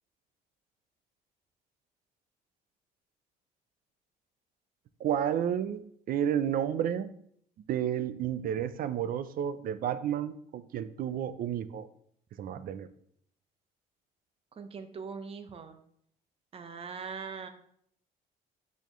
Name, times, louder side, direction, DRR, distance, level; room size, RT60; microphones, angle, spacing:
voice 1, 5.0-7.1 7.7-11.9 12.4-12.9, right 9 dB, 60° right, 13 dB, 0.5 m, -31 dB
voice 2, 14.6-15.8 16.5-17.5, right 5 dB, 35° right, 7 dB, 0.9 m, -41 dB
10.5 x 4.2 x 3.1 m, 0.67 s
cardioid pair, 110°, 17 cm